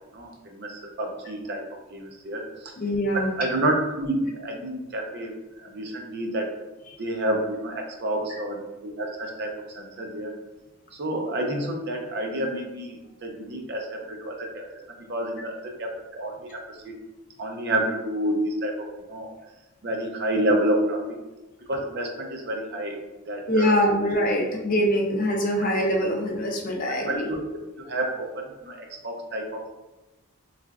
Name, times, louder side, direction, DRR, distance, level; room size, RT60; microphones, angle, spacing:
voice 1, 0.1-1.6 1.9-2.7 3.4-5.3 5.6-6.5 7.0-10.3 11.0-16.9 17.4-19.3 19.8-21.2 21.7-23.0 23.3-23.7 26.9-27.4 27.8-29.6, right 1 dB, 50° right, 1 dB, 0.5 m, -29 dB
voice 2, 2.8-3.3 8.3-8.4 23.5-27.3, equal, 35° left, 0 dB, 0.5 m, -23 dB
3.6 x 3.2 x 2.4 m, 1.1 s
head